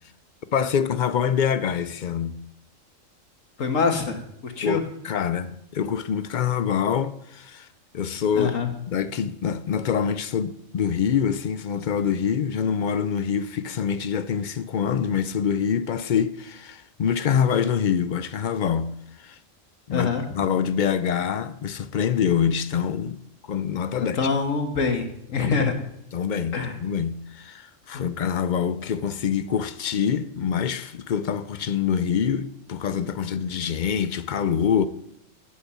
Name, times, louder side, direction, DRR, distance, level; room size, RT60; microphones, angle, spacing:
voice 1, 0.5-2.4 4.6-7.7 7.9-8.6 8.9-19.4 19.9-20.1 20.3-23.2 23.5-24.3 25.4-25.7 26.1-34.9, left 7 dB, 55° left, 0.5 m, -25 dB
voice 2, 3.6-4.8 8.3-8.7 19.9-20.3 24.0-25.7 26.5-26.8 27.9-28.1, left 5 dB, 80° left, 1.8 m, -25 dB
11.5 x 6.6 x 7.0 m
omnidirectional pair, 1.3 m